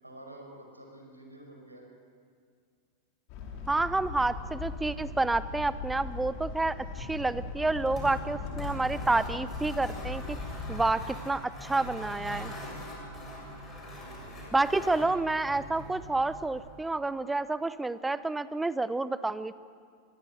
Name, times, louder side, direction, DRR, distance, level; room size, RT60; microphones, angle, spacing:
voice 1, 0.0-1.8 13.1-13.5 13.8-15.1, right 1 dB, 85° right, 2 dB, 5.6 m, -50 dB
sound 1, 3.3-10.8, left 4 dB, 45° left, 4.6 m, -39 dB
voice 2, 3.7-10.4 10.7-12.5 14.5-19.5, right 2 dB, 10° right, 16 dB, 0.8 m, -29 dB
sound 2, 7.6-17.0, equal, 20° left, 7.4 m, -42 dB
23.5 x 22.5 x 7.9 m, 2.1 s
figure-of-eight pair, 90°, 0 cm